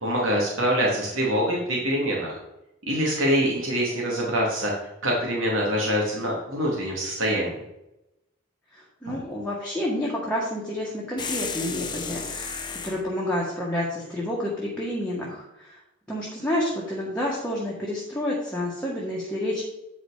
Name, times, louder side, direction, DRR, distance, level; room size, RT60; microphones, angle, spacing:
voice 1, 0.0-2.4 2.9-4.7 5.0-7.5, equal, 80° right, -3 dB, 2.7 m, -24 dB
voice 2, 8.7-15.8 16.1-19.6, left 1 dB, 5° left, -5 dB, 1.7 m, -29 dB
sound 1, 11.2-13.0, left 5 dB, 20° left, 0.9 m, -33 dB
9.3 x 5.1 x 5.0 m, 0.90 s
head